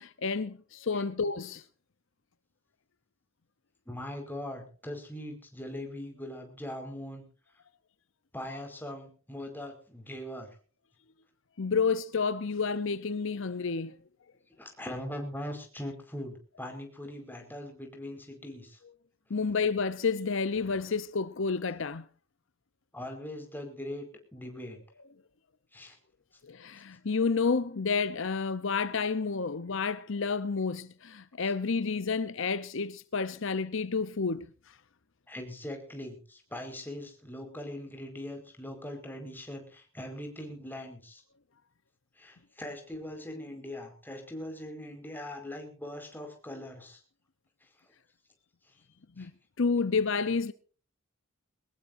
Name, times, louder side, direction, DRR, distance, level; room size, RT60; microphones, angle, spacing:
voice 1, 0.0-1.6 11.6-14.0 19.3-22.1 26.4-34.5 49.2-49.3 49.6-50.5, left 5 dB, 65° left, 0.8 m, -30 dB
voice 2, 3.9-7.2 8.3-10.5 14.6-18.8 22.9-24.8 25.7-26.0 35.3-41.2 42.2-47.0 49.2-49.3, left 1 dB, 10° left, 5.0 m, -41 dB
22.5 x 19.5 x 2.6 m
head